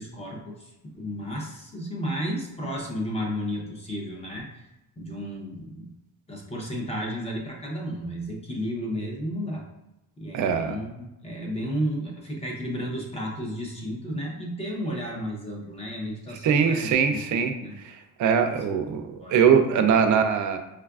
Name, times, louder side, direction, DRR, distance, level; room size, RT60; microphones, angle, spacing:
voice 1, 0.0-4.5 5.0-5.9 6.3-9.6 10.2-17.7 18.5-19.8, equal, 20° left, -1 dB, 0.6 m, -33 dB
voice 2, 10.3-10.8 16.4-17.5 17.9-20.6, right 7 dB, 55° right, 6 dB, 0.4 m, -22 dB
4.6 x 2.3 x 2.3 m, 0.94 s
cardioid pair, 170°, 35 cm